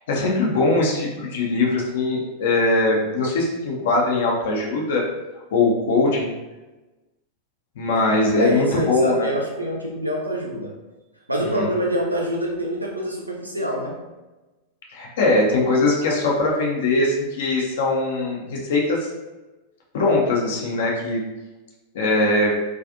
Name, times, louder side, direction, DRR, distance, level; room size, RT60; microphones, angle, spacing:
voice 1, 0.1-5.0 5.5-6.3 7.8-9.3 11.5-11.7 14.9-19.1 19.9-21.2 21.9-22.5, left 2 dB, 55° left, -1 dB, 0.5 m, -21 dB
voice 2, 8.4-10.8 11.3-14.1, equal, 85° right, -1 dB, 0.5 m, -25 dB
2.3 x 2.3 x 2.5 m, 1.1 s
figure-of-eight pair, 90°, 0 cm